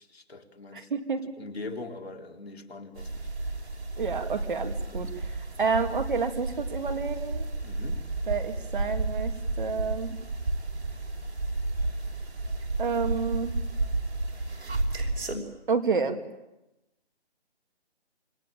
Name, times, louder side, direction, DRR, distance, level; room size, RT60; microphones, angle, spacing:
voice 1, 0.0-0.9 1.4-3.5 4.9-5.1 7.6-8.1, left 3 dB, 70° left, 3 dB, 3.9 m, -42 dB
voice 2, 0.7-1.2 4.0-7.5 8.3-10.2 12.8-13.6 15.7-16.2, right 5 dB, 50° right, 6 dB, 3.0 m, -29 dB
sound 1, 3.0-15.4, right 2 dB, 80° right, 5.7 m, -32 dB
27.0 x 23.5 x 9.0 m, 0.96 s
hypercardioid pair, 165°, 32 cm